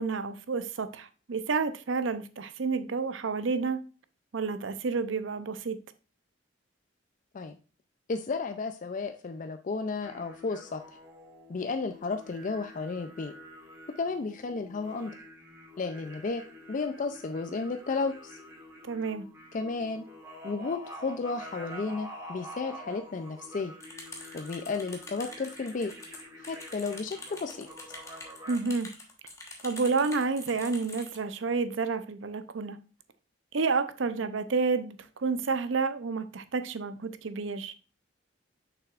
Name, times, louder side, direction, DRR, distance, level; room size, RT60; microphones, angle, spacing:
voice 1, 0.0-3.8 4.3-5.8 18.8-19.2 28.5-28.9 29.6-32.8 33.5-37.7, right 4 dB, 75° right, 0.6 m, -30 dB
voice 2, 8.1-10.8 11.5-13.3 14.0-15.1 15.8-16.4 16.7-18.4 19.5-20.0 20.4-23.7 24.3-25.9 26.4-27.7, left 4 dB, 40° left, 0.4 m, -33 dB
sound 1, 10.0-28.6, equal, 15° right, 2.1 m, -47 dB
sound 2, 23.8-31.2, left 2 dB, 15° left, 1.2 m, -45 dB
6.7 x 5.8 x 2.4 m
head